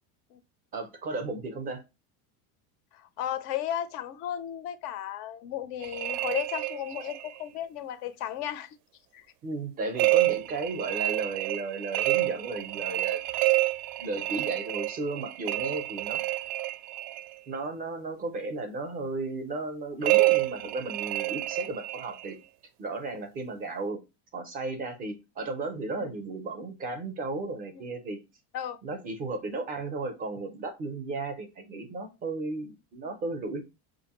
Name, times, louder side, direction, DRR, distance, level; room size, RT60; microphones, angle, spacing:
voice 1, 0.7-1.8 9.4-13.2 14.0-16.2 17.5-22.4 22.8-24.0 24.3-28.2 28.8-33.6, right 3 dB, 20° right, 0.4 m, -34 dB
voice 2, 2.9-8.8 9.1-9.2 26.0-26.1 28.5-28.8, left 11 dB, 40° left, 0.4 m, -34 dB
sound 1, 5.8-7.4 10.0-17.3 20.0-22.3, right 18 dB, 80° right, 0.5 m, -28 dB
5.3 x 2.5 x 2.8 m
cardioid pair, 175°, 45 cm